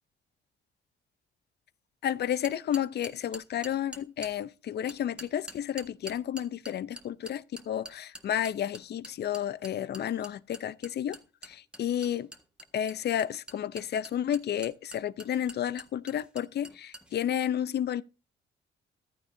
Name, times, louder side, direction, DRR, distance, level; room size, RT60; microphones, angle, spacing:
voice 1, 2.0-11.2 11.4-12.3 12.7-18.0, left 10 dB, 55° left, 0.6 m, -31 dB
sound 1, 2.4-4.3 4.9-17.1, right 1 dB, 5° right, 1.6 m, -45 dB
14.5 x 12.5 x 2.7 m
cardioid pair, 90°, 20 cm